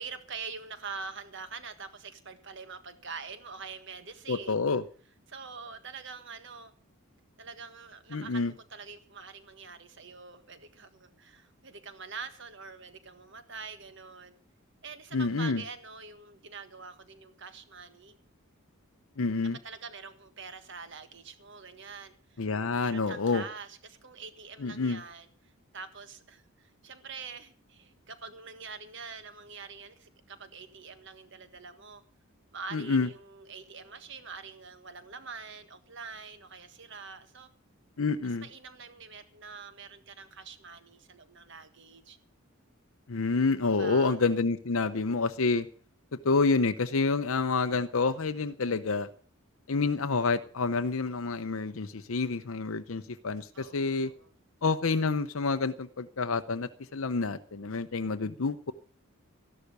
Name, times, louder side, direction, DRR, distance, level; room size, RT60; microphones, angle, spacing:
voice 1, 0.0-4.6 5.3-6.7 7.4-14.3 14.8-18.2 19.6-22.5 22.8-32.0 32.5-37.5 38.4-42.2 43.6-44.2 44.9-45.2 53.5-54.3, right 5 dB, 55° right, 1.6 m, -45 dB
voice 2, 4.3-4.8 8.1-8.5 15.1-15.6 19.2-19.6 22.4-23.4 24.6-25.0 32.7-33.1 38.0-38.5 43.1-45.7 46.2-49.1 49.7-54.1 54.6-58.7, left 4 dB, 70° left, 0.7 m, -28 dB
13.5 x 11.5 x 6.7 m
head